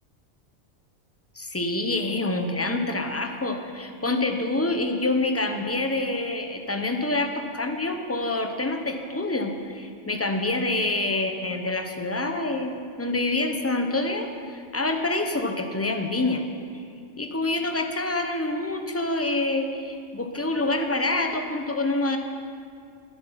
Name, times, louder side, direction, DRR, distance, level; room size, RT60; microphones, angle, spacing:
voice 1, 1.4-16.4 17.2-22.2, left 2 dB, 15° left, 5 dB, 0.8 m, -27 dB
20.5 x 7.8 x 5.8 m, 2.4 s
omnidirectional pair, 1.4 m